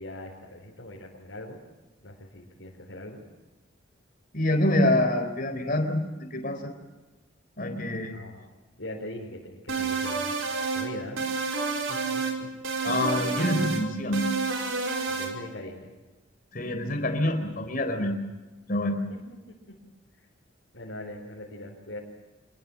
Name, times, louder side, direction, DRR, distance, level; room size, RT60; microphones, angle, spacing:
voice 1, 0.0-1.6 2.0-3.2 8.1-8.5 8.8-10.3 10.7-11.2 11.9-12.5 15.1-15.9 19.1-19.4 19.7-19.8 20.2-20.3 20.7-22.0, left 1 dB, 75° left, -3 dB, 4.8 m, -41 dB
voice 2, 4.3-6.0 6.3-6.7 7.6-8.1 12.8-14.3 16.5-18.2 18.7-19.0, left 1 dB, 45° left, 7 dB, 4.1 m, -26 dB
sound 1, 9.7-10.9 11.2-12.4 12.6-13.8 14.1-15.3, right 4 dB, 90° right, 4.7 m, -29 dB
27.0 x 21.5 x 7.5 m, 1.2 s
head